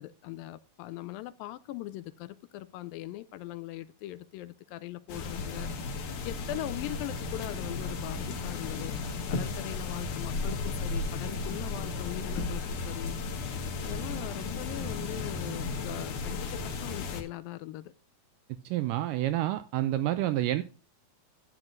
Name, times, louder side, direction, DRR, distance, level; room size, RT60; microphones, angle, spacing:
voice 1, 0.0-5.7 6.2-8.9 9.3-13.2 13.8-17.9, left 15 dB, 80° left, 2.2 m, -40 dB
sound 1, 5.1-17.2, left 4 dB, 65° left, 2.8 m, -34 dB
voice 2, 18.7-20.6, right 14 dB, 85° right, 1.9 m, -28 dB
12.0 x 9.0 x 2.5 m
omnidirectional pair, 4.2 m